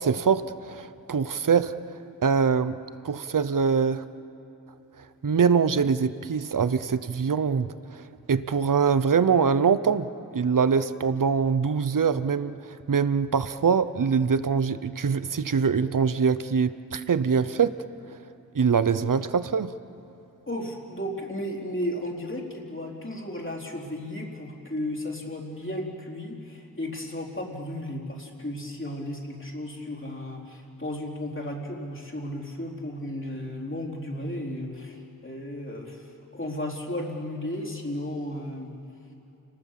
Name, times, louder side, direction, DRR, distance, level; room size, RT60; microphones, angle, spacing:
voice 1, 0.0-1.7 2.2-2.8 3.0-4.0 5.2-7.7 8.3-12.5 12.9-17.7 18.5-19.7, right 6 dB, 60° right, 13 dB, 0.8 m, -23 dB
voice 2, 20.5-38.7, left 1 dB, 35° left, -2 dB, 4.1 m, -34 dB
30.0 x 19.5 x 7.6 m, 2.8 s
wide cardioid pair, 65°, 36 cm